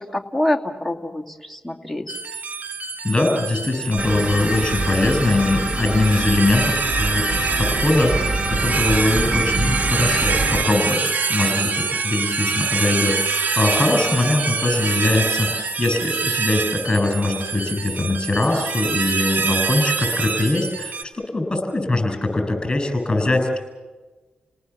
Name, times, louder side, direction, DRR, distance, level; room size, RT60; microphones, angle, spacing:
voice 1, 0.0-2.2, left 1 dB, ahead, 1 dB, 2.6 m, -26 dB
sound 1, 2.1-21.0, right 5 dB, 60° right, 2.2 m, -25 dB
voice 2, 3.0-7.3 7.6-23.6, left 2 dB, 25° left, 5 dB, 8.0 m, -22 dB
sound 2, 4.0-10.6, right 2 dB, 40° right, 2.3 m, -24 dB
29.5 x 19.0 x 7.4 m, 1.2 s
cardioid pair, 55°, 3 cm